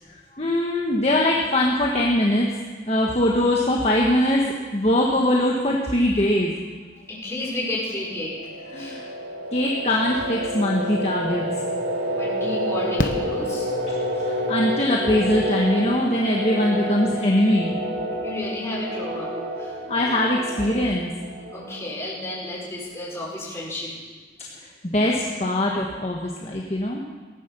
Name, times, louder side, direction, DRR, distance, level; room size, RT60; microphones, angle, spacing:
voice 1, 0.3-2.5 2.9-4.4 4.7-6.5 8.7-9.0 9.5-11.5 14.2-17.8 19.9-21.1 24.8-27.0, left 1 dB, 35° left, -2 dB, 1.5 m, -21 dB
voice 2, 7.1-8.3 8.7-9.0 12.1-13.7 18.2-19.3 19.6-19.7 21.5-23.9, left 1 dB, 15° left, -6 dB, 5.7 m, -32 dB
sound 1, 7.7-22.3, equal, 60° right, 3.2 m, -29 dB
Fireworks, 11.3-11.4 13.0-14.3 16.1-16.2 16.4-16.5, left 1 dB, 50° left, 1.1 m, -29 dB
18.0 x 11.0 x 6.9 m, 1.4 s
head